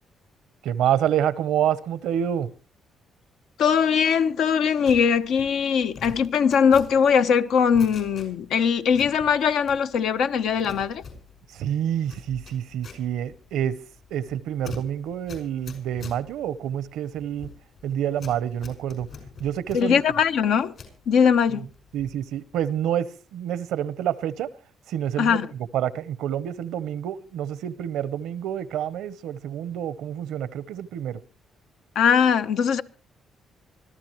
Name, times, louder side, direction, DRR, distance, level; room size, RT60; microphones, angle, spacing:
voice 1, 0.6-2.5 11.5-13.8 14.1-17.5 17.8-19.1 19.4-20.0 21.5-21.7 21.9-24.5 24.9-25.4 25.7-31.2, right 10 dB, 85° right, 0.9 m, -28 dB
voice 2, 3.6-11.0 19.7-20.7 21.1-21.6 25.2-25.5 31.9-32.8, left 7 dB, 75° left, 0.9 m, -21 dB
sound 1, 4.8-8.6 8.9-10.1 10.4-21.0 21.4-22.2 22.5-22.8, left 5 dB, 60° left, 5.8 m, -44 dB
25.0 x 13.5 x 3.1 m
cardioid pair, 90°, 0 cm